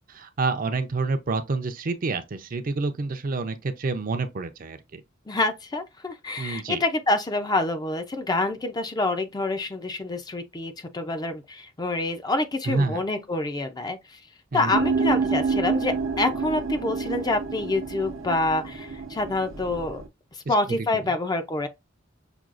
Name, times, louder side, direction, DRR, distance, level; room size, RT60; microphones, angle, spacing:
voice 1, 0.1-5.0 6.4-6.8 12.7-13.0 14.5-14.7 20.5-20.6 20.9-21.0, right 3 dB, 45° right, 0.5 m, -28 dB
voice 2, 5.3-14.2 14.5-20.0 20.5-21.7, left 2 dB, 20° left, 0.4 m, -27 dB
sound 1, 14.7-20.1, right 4 dB, 85° right, 0.8 m, -28 dB
5.9 x 2.3 x 2.4 m
head